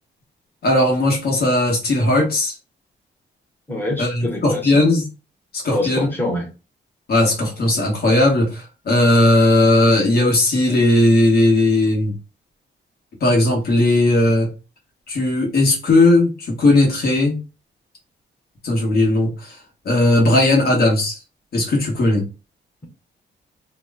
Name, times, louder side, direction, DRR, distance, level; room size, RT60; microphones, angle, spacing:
voice 1, 0.6-2.5 4.0-5.0 5.5-6.1 7.1-12.1 13.2-14.5 15.1-17.4 18.6-19.6 19.8-21.2 21.5-22.2, left 2 dB, 50° left, 1.2 m, -17 dB
voice 2, 3.7-4.8 5.7-6.5, left 1 dB, 10° left, 0.9 m, -25 dB
2.9 x 2.1 x 3.4 m
wide cardioid pair, 180°, 20 cm